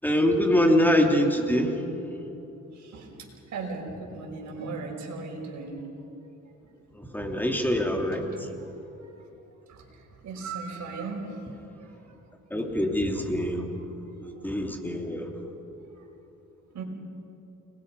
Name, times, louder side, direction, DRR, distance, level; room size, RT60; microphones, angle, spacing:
voice 1, 0.0-1.8 6.9-8.5 12.5-13.7 14.2-15.3, equal, 5° left, 2 dB, 3.3 m, -24 dB
voice 2, 2.7-3.2 3.5-5.8 8.3-8.4 9.0-9.1 9.7-9.9 10.2-11.4 16.7-16.8, right 4 dB, 65° right, 0 dB, 5.7 m, -36 dB
30.0 x 21.5 x 5.6 m, 3.0 s
cardioid pair, 90°, 30 cm